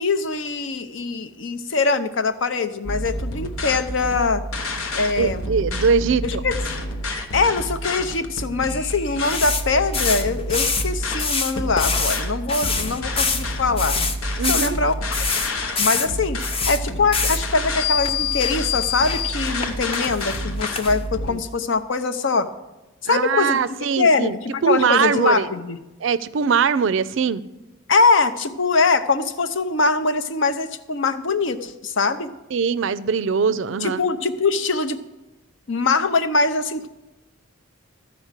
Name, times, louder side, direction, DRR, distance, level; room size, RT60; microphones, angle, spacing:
voice 1, 0.0-4.4 4.9-5.5 6.2-6.6 7.3-14.0 14.5-15.3 15.8-22.5 23.0-23.6 24.0-25.8 27.9-32.3 33.8-35.0 35.7-36.9, left 4 dB, 65° left, 10 dB, 0.7 m, -22 dB
sound 1, 2.8-21.3, left 2 dB, 90° left, 1.1 m, -28 dB
voice 2, 5.2-6.2 14.4-14.8 21.2-21.4 23.1-24.4 24.6-25.5 26.0-27.4 32.5-34.0, right 6 dB, 65° right, 17 dB, 0.4 m, -21 dB
sound 2, 9.2-12.2 12.5-16.8 17.1-17.5 18.0-18.1 18.4-19.7 19.9-21.0, left 5 dB, 25° left, 0.6 m, -25 dB
13.5 x 5.0 x 7.3 m, 1.0 s
head